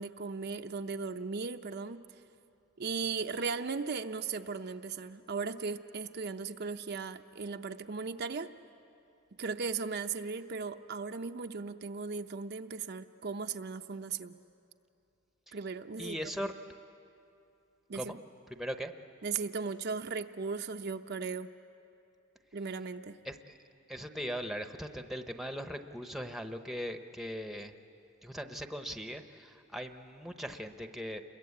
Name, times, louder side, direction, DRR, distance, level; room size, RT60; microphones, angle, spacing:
voice 1, 0.0-2.1 2.8-8.5 9.4-14.3 15.5-16.2 17.9-18.2 19.2-21.5 22.5-23.2, right 4 dB, 50° right, 6 dB, 0.6 m, -37 dB
voice 2, 16.0-16.5 17.9-18.2 18.5-18.9 23.2-23.6 23.9-27.7 28.2-31.2, equal, ahead, 6 dB, 0.8 m, -39 dB
28.5 x 22.0 x 8.5 m, 2.6 s
head